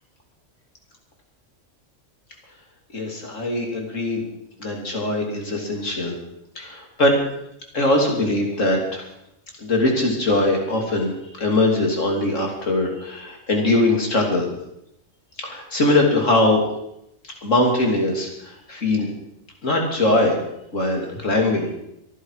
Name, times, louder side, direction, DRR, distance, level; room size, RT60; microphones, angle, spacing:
voice 1, 2.9-4.3 4.6-6.1 6.6-7.2 7.7-9.1 9.6-14.5 15.4-16.6 17.2-19.1 19.6-20.4 20.7-21.7, left 2 dB, 70° left, 1 dB, 3.4 m, -21 dB
24.0 x 11.0 x 4.9 m, 0.82 s
omnidirectional pair, 1.4 m